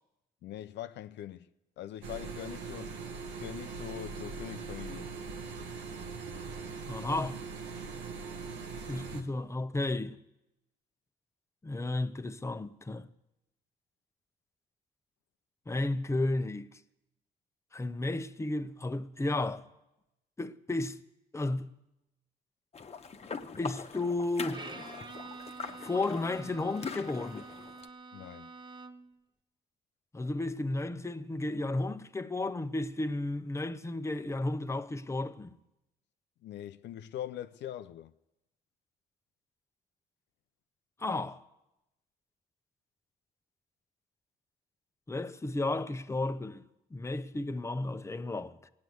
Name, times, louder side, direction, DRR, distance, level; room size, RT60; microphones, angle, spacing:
voice 1, 0.4-1.5 1.8-3.0 3.2-5.1 28.1-28.5 36.4-38.1, left 12 dB, 75° left, 0.6 m, -42 dB
sound 1, 2.0-9.2, right 5 dB, 85° right, 1.4 m, -41 dB
voice 2, 6.9-7.4 8.9-10.2 11.6-13.1 15.7-16.8 17.7-19.7 20.4-21.0 21.3-21.7 23.6-24.6 25.8-27.5 30.1-35.6 41.0-41.4 45.1-46.6 46.9-48.7, left 2 dB, 15° left, 0.8 m, -33 dB
sound 2, 22.7-27.9, left 5 dB, 35° left, 1.1 m, -42 dB
Bowed string instrument, 24.5-29.2, right 3 dB, 25° right, 1.1 m, -47 dB
15.5 x 9.6 x 7.8 m
supercardioid pair, 70°, 19 cm